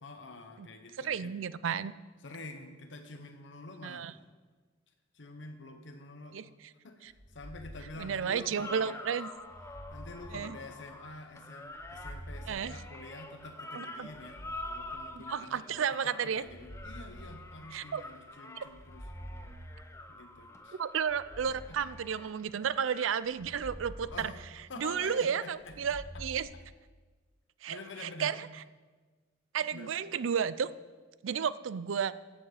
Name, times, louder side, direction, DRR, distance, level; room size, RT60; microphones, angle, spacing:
voice 1, 0.0-1.3 2.2-4.1 5.1-6.5 6.8-9.0 9.9-14.4 14.7-19.1 20.1-20.8 21.7-21.9 24.1-24.4 24.7-25.8 26.1-26.2 26.5-26.6 27.7-28.4 29.7-29.9, left 2 dB, 70° left, 5 dB, 1.0 m, -47 dB
voice 2, 1.0-1.9 3.8-4.1 6.3-6.4 7.0-7.1 8.0-9.3 10.3-10.6 12.5-12.7 13.7-14.1 15.2-16.4 17.7-18.0 18.6-18.7 20.8-24.3 24.8-26.5 27.6-28.5 29.5-30.7 31.2-32.1, right 7 dB, 90° right, 16 dB, 0.4 m, -32 dB
sound 1, 7.1-8.6 9.4-11.1 11.7-13.5 14.1-15.6 16.3-18.1 18.6-20.3 21.0-22.7 23.3-25.1 25.6-26.4, equal, 10° right, 1.9 m, -48 dB
sound 2, 8.6-24.2 25.7-25.8, left 1 dB, 15° left, 0.7 m, -47 dB
15.5 x 7.3 x 4.9 m, 1.4 s
head